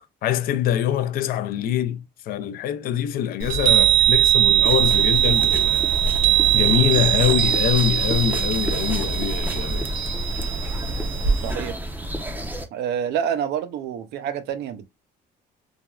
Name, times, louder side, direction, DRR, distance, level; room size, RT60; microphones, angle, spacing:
voice 1, 0.2-5.9 6.5-9.9, left 10 dB, 60° left, 0.4 m, -24 dB
Chime, 3.4-11.5, right 10 dB, 60° right, 0.9 m, -20 dB
sound 1, 4.7-12.7, equal, 10° right, 0.5 m, -31 dB
voice 2, 11.4-11.8 12.7-14.9, right 8 dB, 75° right, 0.5 m, -27 dB
3.2 x 2.3 x 2.3 m
cardioid pair, 110°, 17 cm